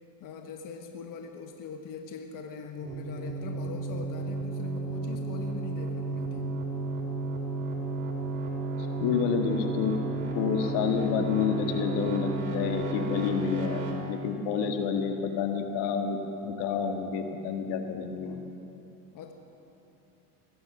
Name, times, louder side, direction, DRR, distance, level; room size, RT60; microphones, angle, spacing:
voice 1, 0.2-6.6 14.6-15.1 18.2-18.6 19.1-19.3, left 6 dB, 45° left, 4 dB, 1.3 m, -42 dB
sound 1, 2.8-13.9, right 3 dB, 65° right, 3.1 m, -33 dB
voice 2, 9.0-10.0 10.3-16.2 16.4-18.4, left 6 dB, 65° left, 4 dB, 1.7 m, -29 dB
21.0 x 9.6 x 6.0 m, 3.0 s
hypercardioid pair, 85°, 44 cm